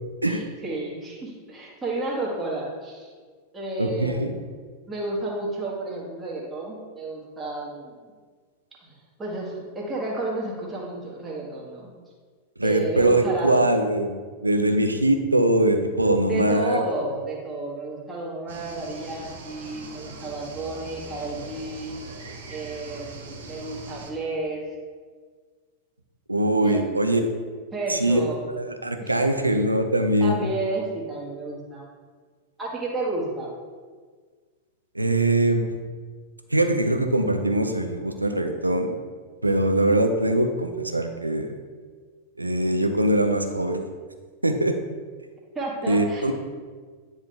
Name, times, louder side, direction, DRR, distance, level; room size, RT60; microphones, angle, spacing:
voice 1, 0.2-3.1 3.5-4.5 4.9-7.9 8.8-8.9 9.2-11.9 12.6-13.5 16.2-21.9 22.5-24.6 26.6-26.8 27.7-28.4 29.0-29.2 30.2-31.8 32.6-33.5 45.6-46.3, right 2 dB, 15° right, -4 dB, 1.8 m, -31 dB
voice 2, 3.8-4.3 12.6-14.2 14.4-16.8 26.3-27.3 27.9-28.2 28.6-30.5 34.9-35.6 36.5-39.0 39.4-41.6 42.4-43.8 44.4-44.7 45.9-46.3, right 1 dB, 85° right, 6 dB, 0.6 m, -22 dB
sound 1, 18.5-24.1, right 3 dB, 60° right, 1.0 m, -41 dB
9.7 x 3.8 x 3.5 m, 1.6 s
figure-of-eight pair, 90°, 0 cm